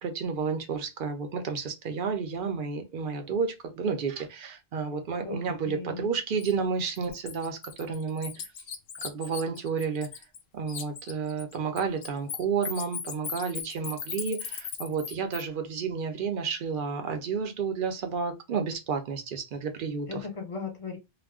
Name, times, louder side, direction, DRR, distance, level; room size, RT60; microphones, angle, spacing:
voice 1, 0.0-8.3 9.0-10.1 10.5-20.2, right 5 dB, 60° right, 0.7 m, -31 dB
voice 2, 5.2-6.1 20.1-21.0, left 5 dB, 35° left, 0.9 m, -37 dB
Bird, 6.4-6.5 6.9-10.4 10.7-15.4, left 7 dB, 65° left, 0.7 m, -38 dB
2.3 x 2.1 x 3.4 m
omnidirectional pair, 1.0 m